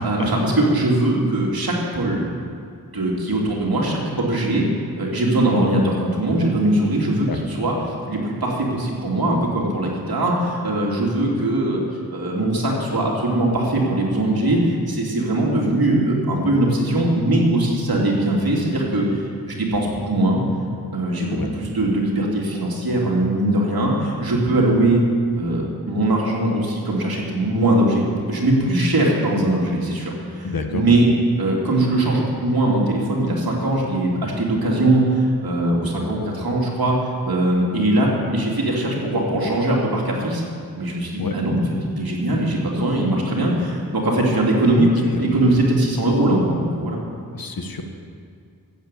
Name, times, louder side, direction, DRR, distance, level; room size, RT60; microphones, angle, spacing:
voice 1, 0.0-2.2 2.9-4.7 5.0-11.8 12.1-20.4 20.9-25.0 25.3-31.1 31.4-37.0 37.2-40.4 40.8-41.6 41.9-44.9 45.2-47.0, right 1 dB, 70° right, -2 dB, 3.0 m, -21 dB
voice 2, 30.4-31.0 41.2-41.4 44.7-45.5 47.3-47.8, left 3 dB, 65° left, 5 dB, 1.4 m, -27 dB
14.0 x 8.0 x 8.4 m, 2.3 s
wide cardioid pair, 110°, 38 cm